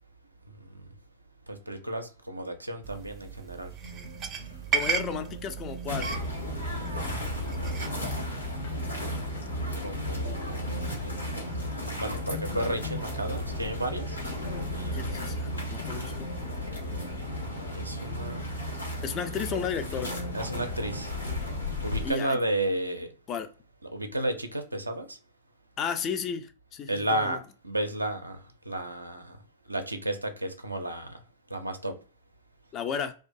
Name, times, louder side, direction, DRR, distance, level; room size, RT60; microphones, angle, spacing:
voice 1, 1.5-3.7 7.0-7.7 9.8-10.7 11.8-14.2 14.7-15.1 17.4-18.4 20.3-21.1 21.8-23.1 23.9-25.2 26.9-28.4 28.7-29.4 29.7-31.2 31.5-32.0, right 1 dB, 90° right, 0.4 m, -33 dB
sound 1, 2.8-8.1, right 6 dB, 30° right, 0.5 m, -35 dB
sound 2, 3.8-21.9, right 1 dB, 50° left, 0.9 m, -45 dB
voice 2, 4.7-6.1 14.9-16.3 19.0-20.1 22.0-22.4 23.3-23.5 25.8-27.4 32.7-33.1, left 7 dB, 30° left, 0.3 m, -33 dB
sound 3, 5.9-22.1, left 1 dB, 90° left, 0.8 m, -34 dB
2.5 x 2.3 x 2.5 m
figure-of-eight pair, 100°, 0 cm